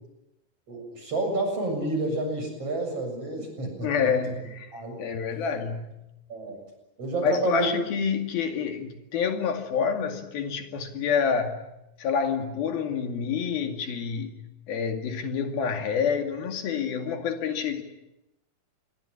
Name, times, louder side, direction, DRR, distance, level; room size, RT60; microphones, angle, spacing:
voice 1, 0.7-4.1 4.7-5.0 6.3-6.6 7.0-7.7, right 2 dB, 40° right, 5 dB, 8.3 m, -29 dB
voice 2, 3.8-4.7 5.0-6.0 7.2-11.6 12.0-14.4 14.7-17.8, left 6 dB, 75° left, 5 dB, 4.1 m, -28 dB
27.0 x 22.5 x 9.8 m, 0.92 s
omnidirectional pair, 4.3 m